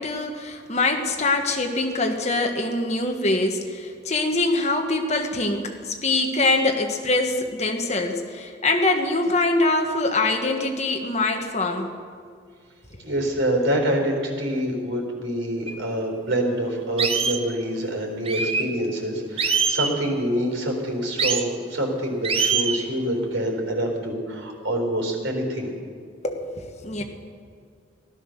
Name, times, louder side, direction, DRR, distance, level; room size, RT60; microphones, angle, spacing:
voice 1, 0.0-11.9 26.2-27.0, left 2 dB, 35° left, 4 dB, 1.4 m, -24 dB
voice 2, 13.0-25.7, right 1 dB, 80° right, 1 dB, 4.2 m, -26 dB
sound 1, 15.7-15.8 16.3-16.4 17.0-17.4 18.3-18.7 19.4-19.9 21.2-21.5 22.2-22.8, right 5 dB, 30° right, 0.8 m, -23 dB
16.0 x 12.5 x 6.6 m, 2.1 s
head